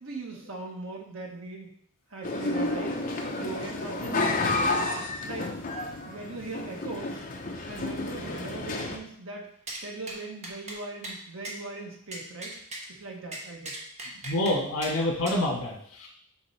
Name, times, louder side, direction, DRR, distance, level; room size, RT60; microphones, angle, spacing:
voice 1, 0.0-1.7 2.1-3.0 3.4-4.7 5.2-5.5 6.0-7.2 7.7-9.5 9.8-12.6 13.0-13.8, right 3 dB, 70° right, 0 dB, 1.3 m, -39 dB
sound 1, 2.2-9.0, left 2 dB, 40° left, 0.8 m, -31 dB
sound 2, 9.7-9.8 10.1-10.2 10.4-10.8 11.0-11.2 11.4-11.6 12.1-12.9 13.3-14.6 14.8-14.9 15.3-15.4, right 1 dB, 35° right, 1.1 m, -38 dB
voice 2, 14.2-16.1, left 1 dB, 80° left, -2 dB, 1.4 m, -27 dB
6.1 x 3.8 x 4.6 m, 0.65 s
head